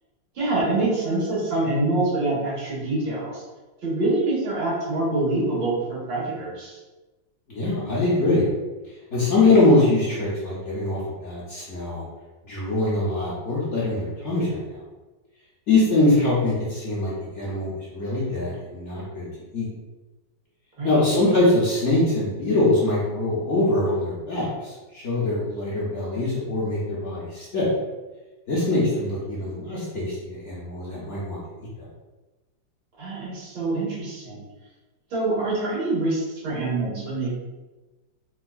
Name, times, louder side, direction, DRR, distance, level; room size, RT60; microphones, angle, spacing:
voice 1, 0.4-3.4 3.8-6.8 16.1-16.2 20.8-21.1 33.0-34.4 35.1-37.3, right 2 dB, 85° right, -8 dB, 2.2 m, -25 dB
voice 2, 7.5-8.5 9.1-12.0 12.5-14.8 15.7-19.2 19.5-19.7 20.8-27.7 28.5-31.4, left 2 dB, 55° left, -7 dB, 0.8 m, -23 dB
4.5 x 2.4 x 2.3 m, 1.2 s
omnidirectional pair, 2.0 m